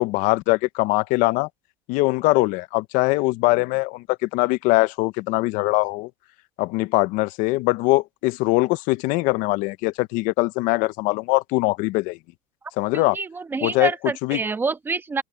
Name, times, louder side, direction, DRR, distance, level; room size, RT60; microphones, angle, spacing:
voice 1, 0.0-1.5 1.9-6.1 6.6-12.2 12.8-13.2 13.6-14.4, left 22 dB, 45° left, 0.5 m, -22 dB
voice 2, 12.9-15.2, right 4 dB, 10° right, 1.0 m, -27 dB
open air
supercardioid pair, 160°, 19 cm